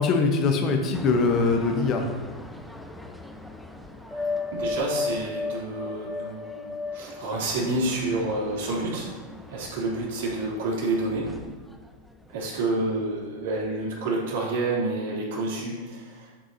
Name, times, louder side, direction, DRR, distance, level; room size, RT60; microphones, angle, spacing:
voice 1, 0.0-2.1, left 4 dB, 35° left, 4 dB, 1.0 m, -22 dB
sound 1, 0.9-13.2 13.5-13.9, left 3 dB, ahead, 0.7 m, -36 dB
voice 2, 4.1-9.1 9.5-11.3 12.3-16.3, right 2 dB, 55° right, -4 dB, 3.0 m, -29 dB
12.5 x 7.7 x 2.8 m, 1.3 s
figure-of-eight pair, 90°, 0 cm